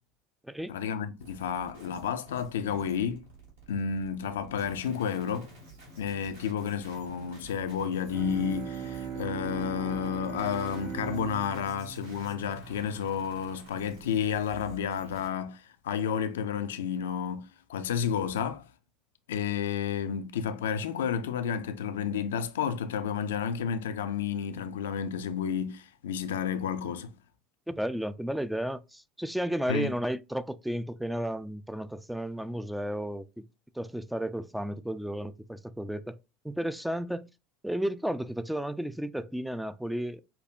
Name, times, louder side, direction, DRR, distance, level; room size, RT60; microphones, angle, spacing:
voice 1, 0.7-3.2 3.7-5.5 6.0-18.7 19.3-27.1 29.7-29.9, left 7 dB, 70° left, 0.4 m, -31 dB
sound 1, 1.2-15.3, right 2 dB, 70° right, 2.0 m, -50 dB
Bowed string instrument, 8.1-13.5, right 8 dB, 40° right, 1.8 m, -39 dB
voice 2, 27.7-33.5 33.8-36.2 36.4-37.3 37.6-40.2, equal, 5° right, 0.3 m, -33 dB
5.9 x 2.7 x 2.4 m
figure-of-eight pair, 70°, 0 cm